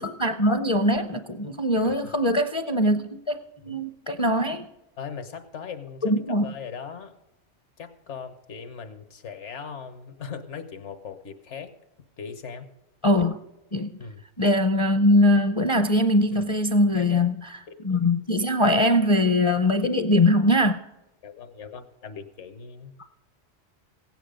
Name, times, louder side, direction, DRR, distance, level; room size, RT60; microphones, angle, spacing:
voice 1, 0.0-4.7 6.0-6.5 13.0-13.4 13.7-14.0 14.4-17.6 17.8-20.8, left 1 dB, 35° left, 7 dB, 0.5 m, -22 dB
voice 2, 1.8-2.1 3.7-3.9 5.0-7.2 7.8-11.7 12.2-12.7 14.0-14.2 16.3-16.4 16.9-17.3 17.7-18.0 21.2-23.0, left 6 dB, 80° left, 9 dB, 1.4 m, -39 dB
16.5 x 9.1 x 5.1 m, 0.95 s
omnidirectional pair, 1.2 m